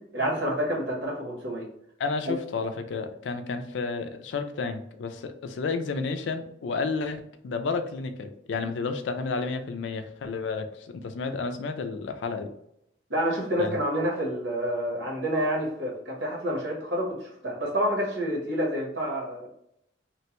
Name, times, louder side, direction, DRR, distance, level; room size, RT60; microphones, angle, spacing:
voice 1, 0.1-1.7 2.2-2.4 13.1-19.5, equal, 75° right, -2 dB, 1.0 m, -28 dB
voice 2, 2.0-12.5 13.6-13.8, left 4 dB, 80° left, 8 dB, 0.4 m, -31 dB
3.0 x 2.2 x 2.9 m, 0.75 s
head